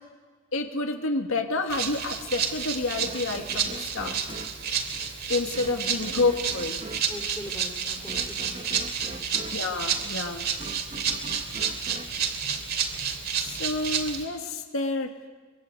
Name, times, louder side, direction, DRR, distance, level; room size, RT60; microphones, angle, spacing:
voice 1, 0.5-4.2 5.3-6.8 9.5-10.5 13.4-15.1, left 3 dB, 65° left, 4 dB, 1.9 m, -29 dB
Rattle (instrument), 1.7-14.2, right 7 dB, 45° right, 2.9 m, -30 dB
sound 1, 3.0-13.2, right 2 dB, 30° right, 1.2 m, -43 dB
voice 2, 7.1-9.3, equal, 10° left, 3 dB, 3.3 m, -43 dB
24.0 x 24.0 x 9.6 m, 1.4 s
head